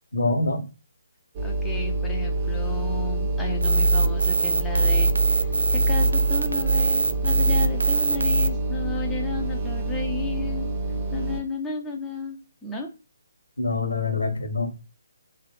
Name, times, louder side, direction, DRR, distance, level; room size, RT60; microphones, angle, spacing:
voice 1, 0.1-0.6 4.0-4.1 13.6-14.7, left 3 dB, 75° left, 5 dB, 1.1 m, -25 dB
sound 1, 1.3-11.4, right 2 dB, 30° right, 0.7 m, -27 dB
voice 2, 1.4-10.7 11.1-12.9, left 4 dB, 5° left, -1 dB, 0.5 m, -33 dB
sound 2, 3.6-8.5, right 2 dB, 75° right, 0.4 m, -22 dB
3.0 x 2.4 x 3.0 m, 0.31 s
figure-of-eight pair, 140°, 0 cm